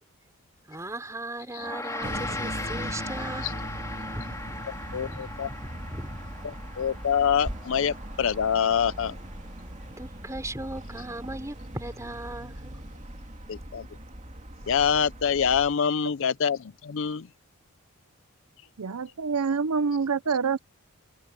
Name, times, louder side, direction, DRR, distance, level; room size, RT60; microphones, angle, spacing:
voice 1, 0.7-3.5 4.1-6.2 10.0-12.7, right 1 dB, 15° right, 4.2 m, -38 dB
Gong, 1.6-11.1, left 2 dB, 15° left, 2.9 m, -40 dB
sound 1, 2.0-15.7, right 1 dB, 35° right, 2.6 m, -39 dB
voice 2, 4.9-5.5 6.4-9.1 13.5-13.9 14.7-17.3, left 7 dB, 60° left, 0.5 m, -25 dB
voice 3, 18.8-20.6, right 5 dB, 80° right, 0.6 m, -26 dB
head